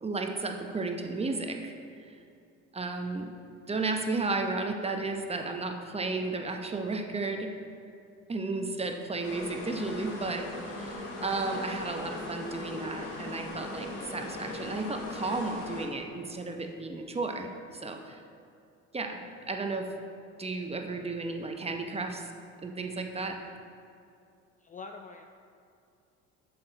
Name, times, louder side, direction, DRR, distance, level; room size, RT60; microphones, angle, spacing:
voice 1, 0.0-1.7 2.7-3.3 3.7-7.5 8.3-18.2 18.9-19.9 20.4-22.2 22.6-23.3, right 3 dB, 20° right, 3 dB, 0.8 m, -33 dB
sound 1, 9.2-15.9, left 2 dB, 80° left, 1.5 m, -39 dB
voice 2, 24.6-25.3, left 4 dB, 25° left, 5 dB, 0.4 m, -44 dB
8.4 x 6.9 x 3.9 m, 2.5 s
supercardioid pair, 85°, 32 cm